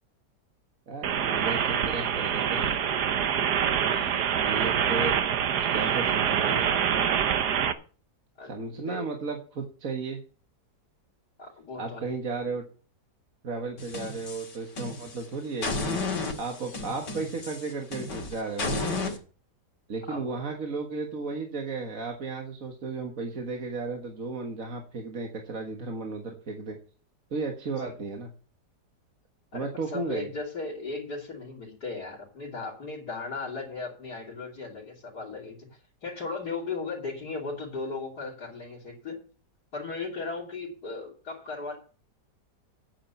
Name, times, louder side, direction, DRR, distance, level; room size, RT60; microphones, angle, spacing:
voice 1, 0.9-3.1 4.4-5.2 5.7-6.7 8.4-10.2 11.7-12.6 13.4-16.0 16.4-19.2 19.9-26.8 27.3-28.3 29.5-30.3, right 4 dB, 50° right, 2 dB, 1.9 m, -34 dB
sound 1, 1.0-7.7, right 8 dB, 70° right, 1.5 m, -25 dB
voice 2, 3.8-4.4 8.4-9.1 11.4-12.1 20.1-20.4 27.8-27.9 29.5-35.6 36.0-39.2 39.7-41.8, left 3 dB, 65° left, -7 dB, 3.7 m, -37 dB
sound 2, 13.8-15.2 15.6-19.2, left 3 dB, 80° left, 2.8 m, -33 dB
9.2 x 8.8 x 6.9 m, 0.40 s
omnidirectional pair, 1.8 m